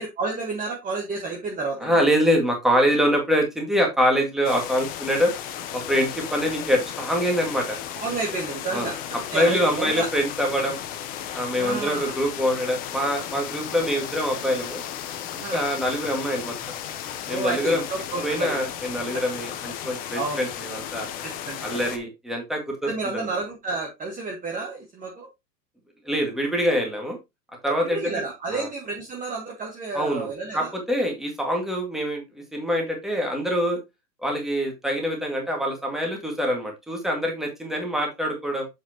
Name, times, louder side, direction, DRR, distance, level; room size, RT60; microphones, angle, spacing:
voice 1, 0.0-1.9 8.0-10.1 11.6-12.1 13.5-13.7 15.4-15.7 17.3-18.7 20.1-20.5 21.2-22.1 22.8-25.3 27.8-30.7, right 3 dB, 15° right, 0 dB, 1.3 m, -31 dB
voice 2, 1.8-5.3 5.7-7.8 8.7-8.9 9.3-10.8 11.3-14.8 15.5-16.6 17.3-17.8 18.2-21.1 21.6-22.9 26.1-27.2 27.6-28.1 28.5-28.7 29.9-30.3 30.5-33.8 34.2-38.7, equal, ahead, 1 dB, 1.9 m, -24 dB
sound 1, 4.4-22.0, left 10 dB, 20° left, 0.5 m, -35 dB
7.3 x 5.6 x 2.9 m, 0.22 s
hypercardioid pair, 140°, 49 cm